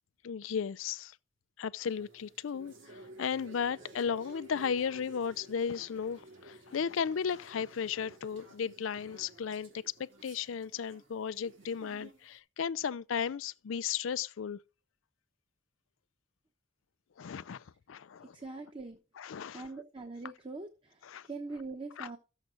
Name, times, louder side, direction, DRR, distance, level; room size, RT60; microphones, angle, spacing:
voice 1, 0.2-1.2 1.6-14.6 17.2-18.4 19.2-19.7 21.0-21.3 22.0-22.1, left 7 dB, 85° left, 0.4 m, -35 dB
sound 1, 1.8-12.3, right 1 dB, 70° right, 2.8 m, -54 dB
voice 2, 18.3-19.0 19.5-22.2, right 3 dB, 25° right, 1.0 m, -43 dB
13.0 x 7.2 x 3.8 m
head